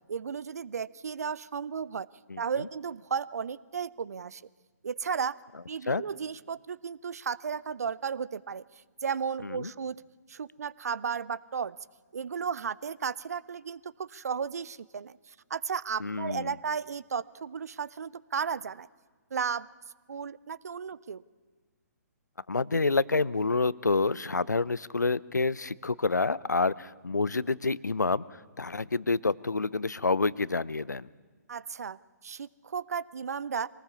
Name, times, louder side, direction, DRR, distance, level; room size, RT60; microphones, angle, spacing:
voice 1, 0.1-2.1 2.4-4.4 4.8-5.3 5.7-8.6 9.0-10.0 10.3-11.8 12.1-18.9 19.3-19.7 20.1-21.2 31.5-33.7, right 6 dB, 60° right, 21 dB, 0.6 m, -34 dB
voice 2, 16.0-16.5 22.5-28.2 28.6-31.1, left 3 dB, 85° left, 21 dB, 0.6 m, -28 dB
23.0 x 19.0 x 7.0 m, 1.4 s
figure-of-eight pair, 130°, 9 cm